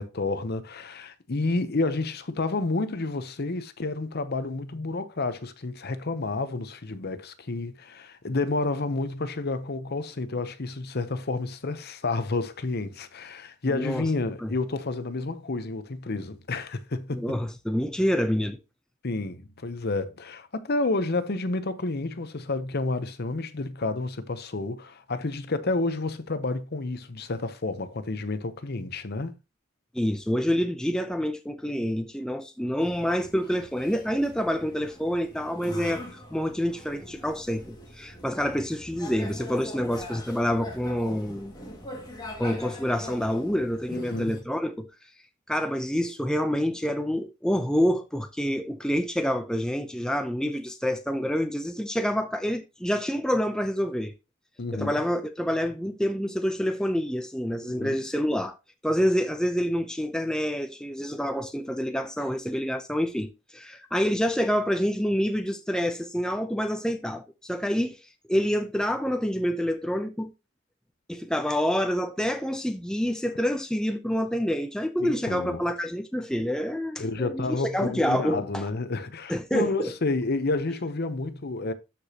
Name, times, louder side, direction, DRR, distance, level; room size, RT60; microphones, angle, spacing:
voice 1, 0.0-17.4 19.0-29.4 43.9-44.4 54.6-55.0 57.7-58.0 75.0-75.7 77.0-81.7, left 3 dB, 50° left, 0.8 m, -30 dB
voice 2, 13.7-14.0 14.4-14.5 17.1-18.6 29.9-36.0 36.3-41.5 42.4-44.9 45.5-54.1 54.7-58.6 58.8-63.3 63.5-68.0 68.3-70.3 71.1-77.5 77.7-78.6 79.3-79.9, equal, 5° left, 0.6 m, -27 dB
sound 1, 32.8-44.4, left 1 dB, 20° left, 2.1 m, -42 dB
13.0 x 5.0 x 2.9 m
head